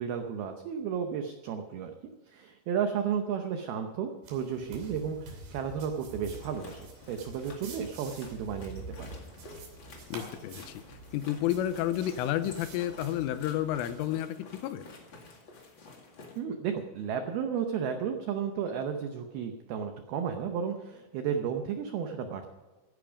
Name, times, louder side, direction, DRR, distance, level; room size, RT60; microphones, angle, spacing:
voice 1, 0.0-1.9 2.3-9.1 16.4-22.5, right 7 dB, 85° right, 5 dB, 2.2 m, -33 dB
sound 1, 4.2-14.1, right 3 dB, 55° right, 4.4 m, -47 dB
sound 2, 6.2-16.4, left 3 dB, 50° left, 1.4 m, -51 dB
voice 2, 10.1-10.8 11.1-14.4 14.6-14.8, left 12 dB, 90° left, 11 dB, 3.4 m, -30 dB
16.5 x 10.5 x 5.1 m, 1.2 s
omnidirectional pair, 5.7 m